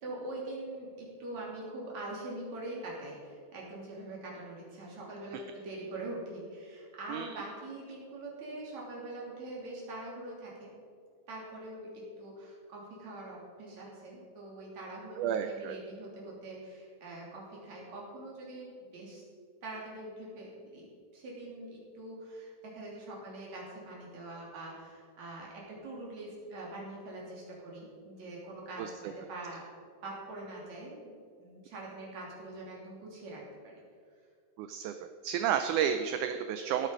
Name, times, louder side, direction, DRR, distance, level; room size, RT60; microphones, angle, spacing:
voice 1, 0.0-10.7 11.3-19.2 19.6-20.9 21.1-29.7 30.0-33.7, right 2 dB, 55° right, -4 dB, 4.3 m, -43 dB
voice 2, 15.2-15.8 28.8-29.1 34.6-34.9 35.2-36.9, right 9 dB, 80° right, 7 dB, 1.8 m, -31 dB
17.5 x 8.5 x 5.2 m, 2.3 s
omnidirectional pair, 4.0 m